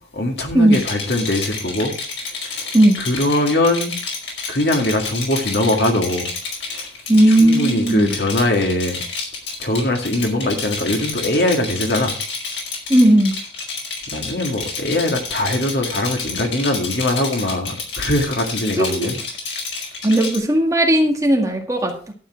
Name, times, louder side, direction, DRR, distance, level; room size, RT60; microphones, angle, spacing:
voice 1, 0.1-1.9 2.4-2.7 3.1-4.0 4.5-6.3 6.7-6.9 7.3-9.0 9.6-12.2 14.1-19.2, left 1 dB, 60° left, 2.3 m, -21 dB
Rattle, 0.7-20.4, left 4 dB, 80° left, 5.0 m, -29 dB
voice 2, 7.1-8.1 12.9-13.3 18.8-19.1 20.0-22.1, right 1 dB, 15° right, 1.9 m, -15 dB
12.0 x 8.8 x 4.6 m
head